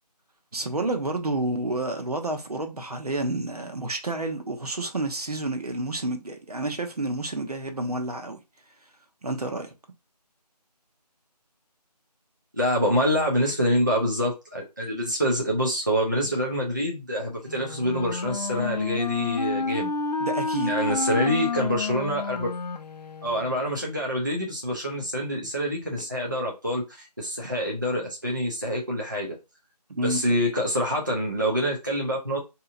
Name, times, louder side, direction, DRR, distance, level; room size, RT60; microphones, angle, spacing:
voice 1, 0.5-8.4 9.2-9.7 20.2-20.7 29.9-30.2, right 2 dB, 65° right, 0.9 m, -29 dB
voice 2, 12.5-19.9 20.7-22.5 23.2-29.4 30.0-32.4, equal, 30° right, 0.5 m, -26 dB
Wind instrument woodwind instrument, 17.5-23.6, left 4 dB, 75° left, 0.5 m, -30 dB
3.9 x 2.8 x 2.5 m
figure-of-eight pair, 170°, 21 cm